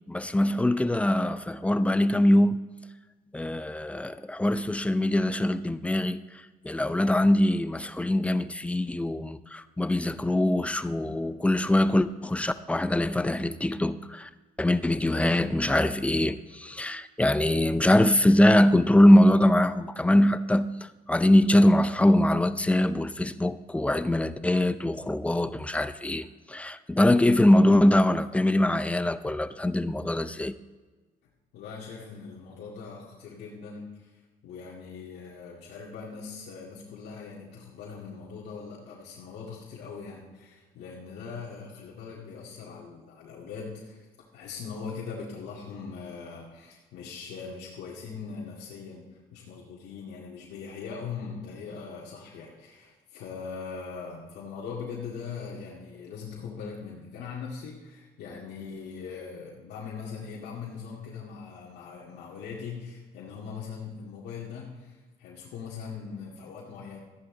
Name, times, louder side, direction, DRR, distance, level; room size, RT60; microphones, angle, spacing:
voice 1, 0.1-2.6 3.3-14.3 14.6-30.6, left 1 dB, 5° left, 0.5 m, -23 dB
voice 2, 31.5-34.1 34.4-44.1 44.3-49.1 49.3-67.0, left 5 dB, 80° left, 2.1 m, -41 dB
14.0 x 10.5 x 3.8 m
cardioid pair, 110°, 17 cm